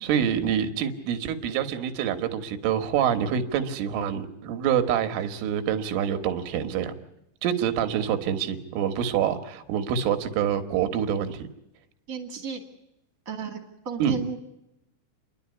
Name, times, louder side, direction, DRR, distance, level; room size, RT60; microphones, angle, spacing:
voice 1, 0.0-6.9 7.4-11.5 14.0-14.2, right 8 dB, 90° right, 8 dB, 4.0 m, -26 dB
voice 2, 12.1-12.6 13.2-14.4, right 6 dB, 30° right, 4 dB, 1.5 m, -34 dB
30.0 x 11.5 x 9.7 m, 0.86 s
omnidirectional pair, 5.5 m